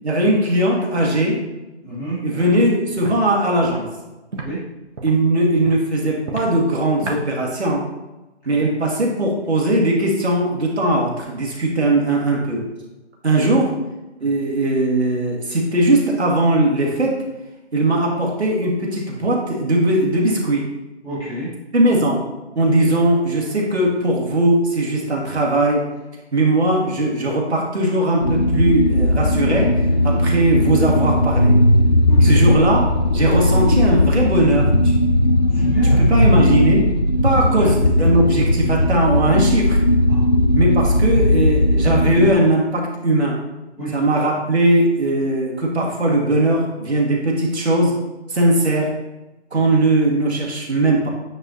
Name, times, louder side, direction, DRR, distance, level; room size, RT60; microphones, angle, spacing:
voice 1, 0.0-1.4 2.2-3.9 5.0-7.9 8.5-12.6 13.2-13.8 14.2-17.2 17.7-20.7 21.7-22.2 22.6-25.9 26.3-31.6 32.2-32.9 33.1-35.0 35.8-36.9 37.2-39.8 40.6-43.4 43.9-48.0 48.3-49.0 49.5-51.1, right 1 dB, 70° right, -2 dB, 1.9 m, -19 dB
voice 2, 1.8-2.2 2.5-2.6 4.4-4.6 8.4-8.7 12.0-12.1 14.2-14.3 21.0-21.5 32.1-32.4 35.5-36.2 37.6-37.7 40.0-40.3 43.8-44.0, right 1 dB, 10° left, -13 dB, 2.0 m, -30 dB
Walk footsteps, 2.3-2.5 3.0-3.2 3.6-3.8 4.3-4.5 4.9-5.2 5.6-5.8 6.2-6.5 7.0-7.2, right 3 dB, 90° right, 1.5 m, -30 dB
sound 1, 28.2-42.3, left 1 dB, 40° left, 0.4 m, -17 dB
9.1 x 4.9 x 2.7 m, 1.0 s
figure-of-eight pair, 165°, 35 cm